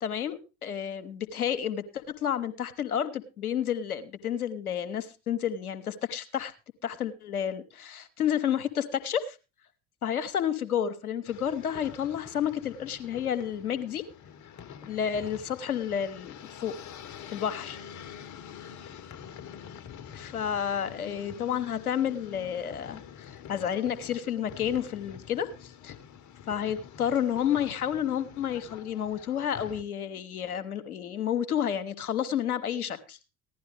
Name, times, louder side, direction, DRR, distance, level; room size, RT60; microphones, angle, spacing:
voice 1, 0.0-6.5 6.8-9.4 10.0-14.0 14.4-14.5 14.8-16.9 17.3-17.8 20.1-25.9 26.5-33.2, left 9 dB, 85° left, 11 dB, 1.0 m, -30 dB
sound 1, 11.2-29.8, left 8 dB, 40° left, 1.2 m, -46 dB
15.5 x 11.0 x 3.3 m, 0.29 s
figure-of-eight pair, 65°, 43 cm